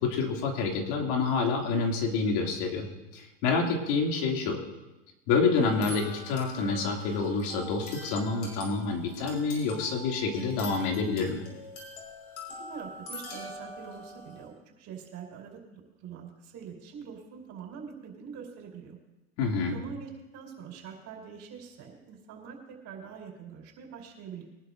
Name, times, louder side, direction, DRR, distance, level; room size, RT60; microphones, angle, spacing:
voice 1, 0.0-2.9 3.1-4.6 5.3-11.4 19.4-19.8, left 4 dB, 60° left, 1 dB, 2.9 m, -28 dB
sound 1, 5.6-14.5, left 2 dB, 90° left, 5.3 m, -44 dB
voice 2, 12.7-19.0 19.7-22.6 22.8-24.4, right 7 dB, 50° right, 0 dB, 5.1 m, -44 dB
23.5 x 11.5 x 2.7 m, 1.0 s
hypercardioid pair, 105°, 36 cm